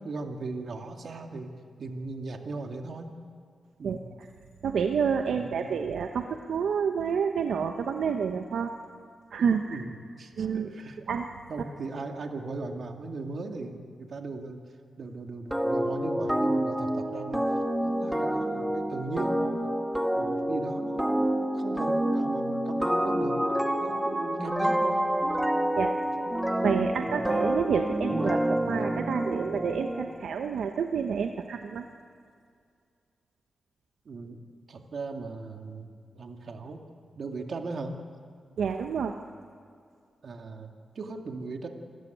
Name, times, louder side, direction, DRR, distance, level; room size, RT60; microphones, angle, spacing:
voice 1, 0.0-1.5 1.8-3.1 3.8-4.0 5.3-5.7 9.7-9.9 10.2-11.0 11.5-14.6 15.0-17.4 17.8-19.7 20.2-23.4 23.8-25.1 27.0-27.2 34.1-34.4 34.7-35.9 36.2-36.8 37.1-38.0 40.2-41.7, right 3 dB, 60° right, 4 dB, 2.3 m, -38 dB
voice 2, 3.8-4.3 4.6-8.7 9.3-9.8 10.4-10.7 11.1-11.3 25.8-25.9 26.6-31.8 38.6-39.1, right 6 dB, 85° right, 5 dB, 1.0 m, -29 dB
sound 1, 15.5-30.1, right 1 dB, 5° right, 1.9 m, -28 dB
27.5 x 14.5 x 9.3 m, 2.2 s
cardioid pair, 90°, 0 cm